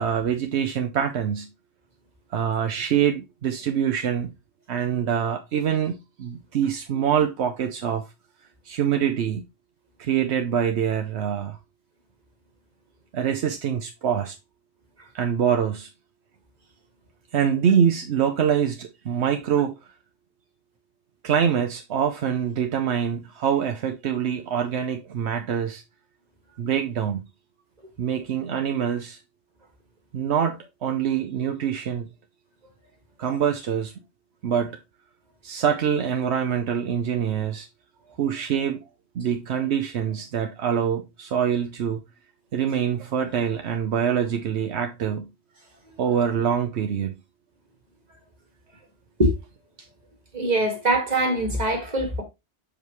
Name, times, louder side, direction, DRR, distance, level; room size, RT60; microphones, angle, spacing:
voice 1, 0.0-1.5 2.3-4.3 4.7-8.0 8.7-9.4 10.0-11.6 13.1-14.4 15.1-15.9 17.3-19.8 21.2-25.8 26.6-27.2 28.0-29.2 30.1-32.1 33.2-33.9 34.4-34.8 35.4-37.7 38.2-38.8 39.1-42.0 42.5-45.3 46.0-47.1, right 8 dB, 80° right, 1.0 m, -25 dB
voice 2, 50.3-52.2, right 1 dB, 40° right, 2.0 m, -22 dB
6.6 x 5.1 x 3.0 m
omnidirectional pair, 1.1 m